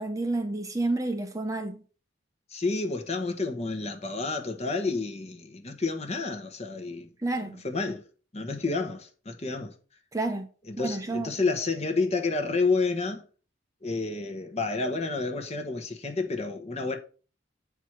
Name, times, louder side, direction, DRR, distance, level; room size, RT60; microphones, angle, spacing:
voice 1, 0.0-1.8 7.2-7.6 10.1-10.5 10.8-11.3, right 2 dB, 15° right, 0.9 m, -30 dB
voice 2, 2.5-7.1 7.6-8.0 8.3-9.7 10.7-13.2 13.8-17.0, left 3 dB, 35° left, 1.1 m, -30 dB
8.1 x 4.7 x 5.9 m
head